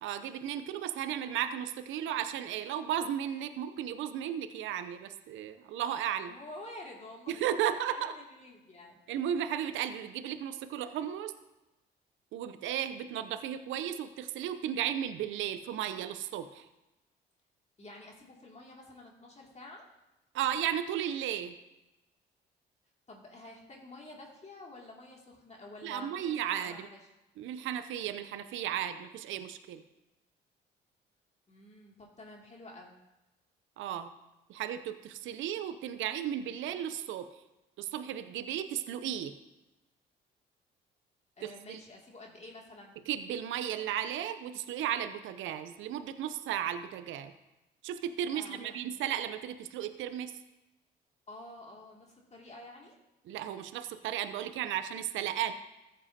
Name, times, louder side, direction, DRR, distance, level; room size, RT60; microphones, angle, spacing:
voice 1, 0.0-6.4 7.3-8.1 9.1-11.3 12.3-16.7 20.3-21.6 25.8-26.9 27.4-29.8 33.8-34.1 34.5-37.3 37.8-39.3 41.4-41.8 43.1-47.3 47.8-50.3 53.3-55.5, right 10 dB, 65° right, 10 dB, 0.6 m, -34 dB
voice 2, 6.3-9.0 17.8-19.8 23.1-27.0 31.5-33.0 41.4-43.0 48.3-48.7 51.3-53.0, left 2 dB, 30° left, -1 dB, 2.5 m, -49 dB
14.0 x 7.5 x 2.8 m, 0.99 s
hypercardioid pair, 55°, 21 cm